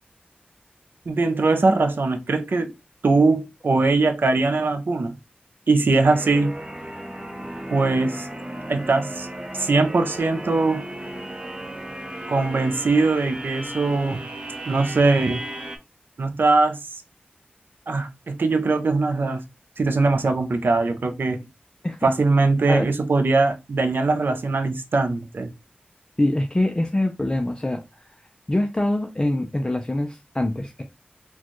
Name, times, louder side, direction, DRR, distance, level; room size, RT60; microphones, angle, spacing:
voice 1, 1.1-2.7 3.0-5.2 5.7-6.6 7.7-8.3 8.7-9.3 9.6-10.9 12.3-14.2 14.7-15.4 16.2-16.8 17.9-19.4 19.8-21.4 22.0-25.5, right 3 dB, 75° right, 0.5 m, -21 dB
sound 1, 5.9-15.8, right 1 dB, 25° right, 0.7 m, -35 dB
voice 2, 26.2-27.8 28.5-30.8, left 1 dB, 25° left, 0.5 m, -24 dB
4.3 x 2.3 x 3.0 m
wide cardioid pair, 75°, 4 cm